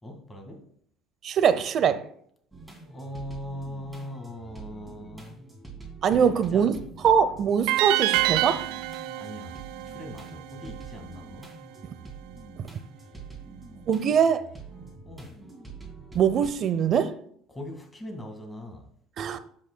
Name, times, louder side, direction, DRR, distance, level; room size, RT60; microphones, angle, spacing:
voice 1, 0.0-0.7 2.8-5.4 6.1-6.8 9.2-9.6 9.8-11.6 15.0-15.4 17.5-18.9, left 1 dB, 10° left, 1.9 m, -40 dB
voice 2, 1.2-2.0 6.0-6.7 7.0-8.6 13.9-14.4 16.1-17.2 19.2-19.4, right 7 dB, 45° right, 0.7 m, -22 dB
sound 1, 2.5-16.5, right 4 dB, 5° right, 2.4 m, -45 dB
sound 2, 7.7-10.8, right 16 dB, 80° right, 0.4 m, -27 dB
14.5 x 5.3 x 2.2 m
cardioid pair, 120°, 0 cm